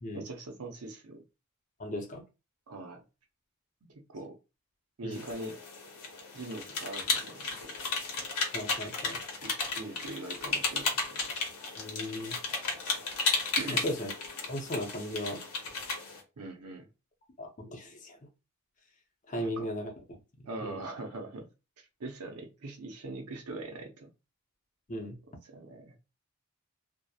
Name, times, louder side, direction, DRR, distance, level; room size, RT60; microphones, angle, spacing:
voice 1, 0.1-1.2 2.7-3.0 3.9-4.4 5.0-5.5 6.3-7.9 9.4-11.4 13.6-13.9 16.4-16.9 19.4-19.7 20.5-21.5 21.8-24.1 25.4-25.9, right 2 dB, 85° right, 4 dB, 0.6 m, -42 dB
voice 2, 1.8-2.2 5.0-5.2 8.5-9.2 11.8-12.4 13.7-14.1 14.5-15.4 17.4-18.2 19.3-20.8 24.9-25.2, equal, 35° left, 2 dB, 0.5 m, -37 dB
sound 1, 5.1-16.2, left 4 dB, 80° left, 0.7 m, -34 dB
2.8 x 2.0 x 2.2 m, 0.28 s
head